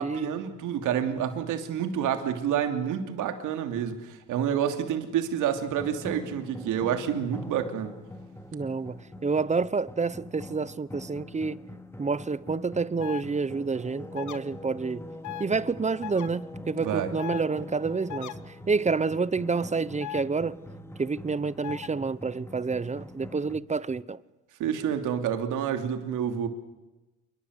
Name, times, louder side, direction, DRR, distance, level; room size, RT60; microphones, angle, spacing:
voice 1, 0.0-7.9 16.8-17.1 24.6-26.5, right 9 dB, 90° right, 3.0 m, -28 dB
sound 1, 5.7-23.6, left 1 dB, 10° left, 2.3 m, -44 dB
voice 2, 8.5-11.6 12.0-15.0 15.4-18.3 18.7-20.6 21.0-24.2, right 4 dB, 25° right, 0.9 m, -28 dB
sound 2, 13.0-13.2 14.2-14.4 15.2-15.5 16.0-16.3 17.2-17.4 18.1-18.3 20.0-20.2 21.6-21.9, left 12 dB, 75° left, 1.5 m, -37 dB
28.0 x 24.0 x 8.2 m
cardioid pair, 90°, 30 cm